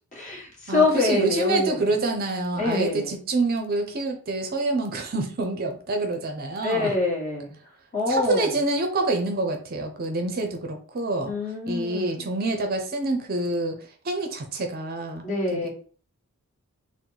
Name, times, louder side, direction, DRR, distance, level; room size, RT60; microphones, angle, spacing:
voice 1, 0.1-1.9 2.6-3.1 6.6-7.5 7.9-8.6 11.2-12.3 15.2-15.7, left 3 dB, 35° left, -3 dB, 1.4 m, -25 dB
voice 2, 0.7-6.9 8.1-11.3 11.7-13.8 14.0-15.2 15.5-15.7, right 2 dB, 45° right, 4 dB, 0.6 m, -27 dB
3.8 x 2.1 x 4.4 m, 0.43 s
head